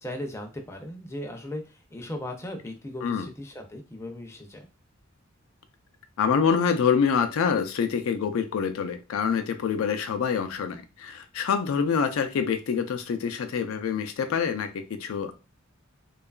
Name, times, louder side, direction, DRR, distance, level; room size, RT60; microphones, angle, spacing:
voice 1, 0.0-4.7, left 1 dB, 15° left, 4 dB, 0.4 m, -37 dB
voice 2, 6.2-15.3, left 6 dB, 85° left, 7 dB, 0.4 m, -26 dB
2.8 x 2.3 x 2.3 m, 0.30 s
head